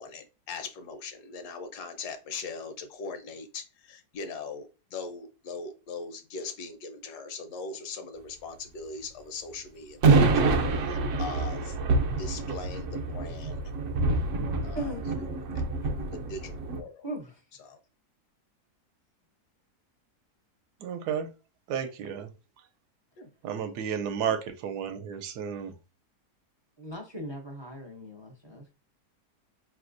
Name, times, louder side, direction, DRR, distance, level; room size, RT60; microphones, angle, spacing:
voice 1, 0.0-10.5 10.9-11.8 12.2-13.6 14.6-17.1 17.6-17.8 23.2-23.3, left 4 dB, 75° left, 1.3 m, -41 dB
sound 1, 10.0-16.8, right 3 dB, 65° right, 0.8 m, -26 dB
voice 2, 17.0-17.4 26.8-28.7, right 1 dB, 45° right, 0.3 m, -39 dB
voice 3, 20.8-21.3 21.7-22.3 23.4-25.7, right 8 dB, 80° right, 1.1 m, -32 dB
5.0 x 3.1 x 2.5 m
omnidirectional pair, 1.8 m